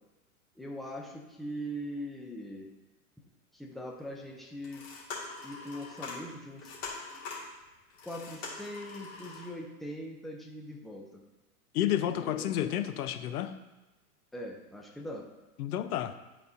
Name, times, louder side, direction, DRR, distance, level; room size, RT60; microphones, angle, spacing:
voice 1, 0.6-2.7 3.5-4.9 5.4-6.7 8.0-11.0 12.1-12.6 14.3-15.3, equal, ahead, 0 dB, 0.4 m, -41 dB
sound 1, 3.9-4.0 4.5-9.5, left 4 dB, 35° left, 2.2 m, -43 dB
voice 2, 11.7-13.5 15.6-16.1, left 11 dB, 80° left, 10 dB, 0.7 m, -30 dB
12.0 x 4.2 x 2.7 m, 1.1 s
hypercardioid pair, 120°, 44 cm